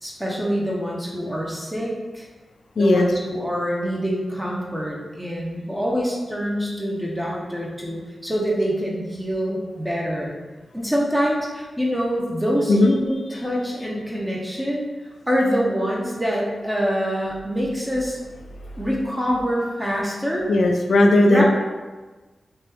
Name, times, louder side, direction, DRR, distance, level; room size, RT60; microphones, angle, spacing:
voice 1, 0.0-2.3 2.8-10.3 10.7-14.9 15.3-18.2 18.8-20.5 21.3-21.4, equal, 10° right, -3 dB, 0.6 m, -25 dB
voice 2, 2.8-3.1 12.7-12.9 20.5-21.4, left 2 dB, 80° left, 2 dB, 0.3 m, -16 dB
2.9 x 2.2 x 3.3 m, 1.3 s
wide cardioid pair, 80°, 0 cm